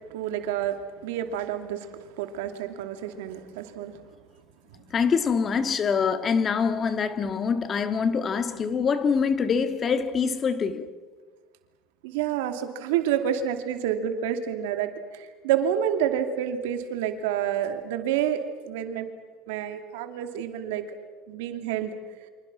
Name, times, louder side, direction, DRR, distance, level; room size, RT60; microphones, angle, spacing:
voice 1, 0.1-4.0 12.0-19.1 19.5-20.8 21.3-21.9, right 9 dB, 85° right, 2.6 m, -29 dB
voice 2, 4.9-10.9, left 6 dB, 30° left, 1.7 m, -25 dB
29.0 x 25.5 x 6.1 m
supercardioid pair, 115°, 0 cm